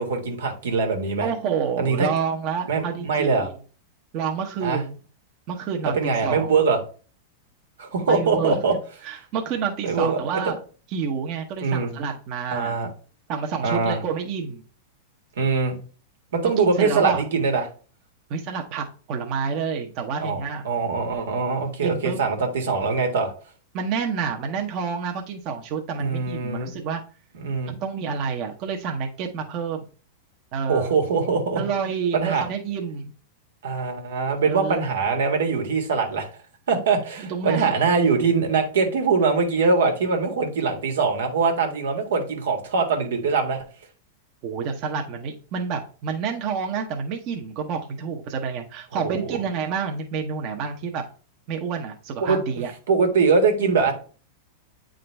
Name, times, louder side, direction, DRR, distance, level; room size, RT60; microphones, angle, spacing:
voice 1, 0.0-1.3 1.8-2.1 2.7-3.5 4.6-4.8 5.9-6.8 7.8-8.7 9.8-10.4 11.6-11.9 12.5-12.9 13.6-14.0 15.4-15.8 16.3-17.7 20.2-23.3 26.0-26.7 27.4-27.7 30.7-31.6 32.1-32.5 33.6-36.3 36.7-43.6 48.9-49.3 52.2-52.4 52.9-53.9, right 4 dB, 85° right, 4 dB, 1.7 m, -22 dB
voice 2, 1.2-3.4 4.1-5.0 5.5-6.6 8.1-8.6 9.0-10.6 10.9-12.8 13.3-14.6 16.6-17.2 18.3-20.7 21.8-22.2 23.7-27.0 27.7-29.9 30.5-30.9 31.6-33.1 34.5-34.8 37.3-37.7 44.4-51.0 51.5-52.7, right 6 dB, 45° right, 2 dB, 1.0 m, -28 dB
8.4 x 3.8 x 3.4 m, 0.38 s
supercardioid pair, 135°, 0 cm